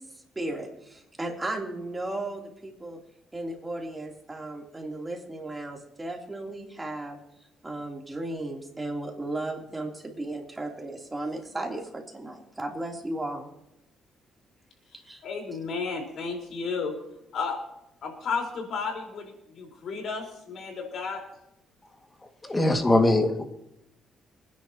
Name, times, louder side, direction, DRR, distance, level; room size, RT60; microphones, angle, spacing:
voice 1, 0.3-3.0 3.3-7.2 7.6-13.5 15.0-15.2, right 2 dB, 15° right, 0 dB, 3.3 m, -35 dB
voice 2, 15.2-17.0 17.3-17.6 18.0-21.2, left 5 dB, 65° left, 1 dB, 4.5 m, -33 dB
voice 3, 22.4-23.4, left 1 dB, 20° left, 4 dB, 2.1 m, -21 dB
26.5 x 10.5 x 3.0 m, 0.84 s
cardioid pair, 90°, 0 cm